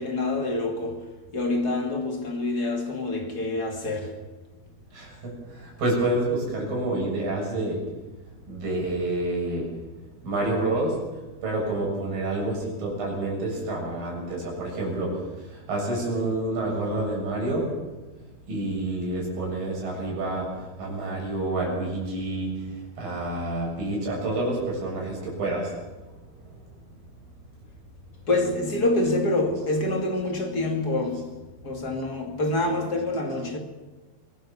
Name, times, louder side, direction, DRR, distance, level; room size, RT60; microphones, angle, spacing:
voice 1, 0.0-4.2 28.3-31.4 31.6-33.6, left 2 dB, 30° left, 2.6 m, -26 dB
voice 2, 4.9-7.9 8.5-9.8 10.2-17.8 18.5-25.8 26.3-26.5, right 2 dB, 65° right, 9.0 m, -28 dB
25.0 x 19.5 x 7.3 m
omnidirectional pair, 4.3 m